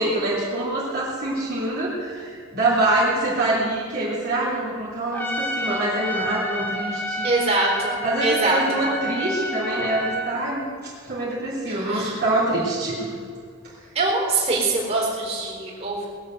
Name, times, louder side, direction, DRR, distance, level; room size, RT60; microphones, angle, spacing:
voice 1, 0.0-7.3 8.0-13.1, right 2 dB, 50° right, -7 dB, 3.5 m, -25 dB
Trumpet, 5.1-10.4, equal, 10° left, 1.6 m, -29 dB
voice 2, 7.2-7.9 8.2-8.6 11.7-12.1 13.9-16.1, right 3 dB, 30° right, -4 dB, 4.2 m, -23 dB
20.5 x 7.5 x 7.9 m, 2.2 s
head